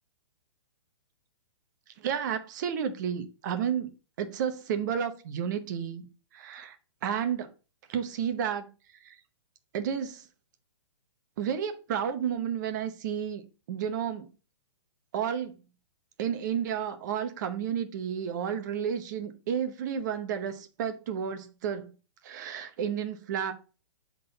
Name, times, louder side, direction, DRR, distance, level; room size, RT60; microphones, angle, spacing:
voice 1, 2.0-6.1 6.3-6.8 7.0-7.5 7.9-8.7 9.0-9.1 9.7-10.3 11.4-13.4 13.7-14.3 15.1-15.6 16.2-21.9 22.2-23.5, right 8 dB, 35° right, 0.9 m, -31 dB
7.4 x 3.8 x 3.9 m
hypercardioid pair, 165°, 16 cm